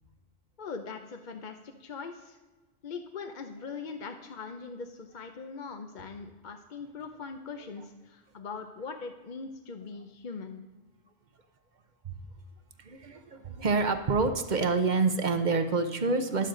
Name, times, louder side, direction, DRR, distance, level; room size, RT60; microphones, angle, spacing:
voice 1, 0.6-2.4 2.8-10.6, left 5 dB, 45° left, 5 dB, 0.7 m, -41 dB
voice 2, 12.8-16.5, right 4 dB, 45° right, 8 dB, 0.9 m, -27 dB
12.0 x 10.5 x 3.8 m, 1.2 s
omnidirectional pair, 1.2 m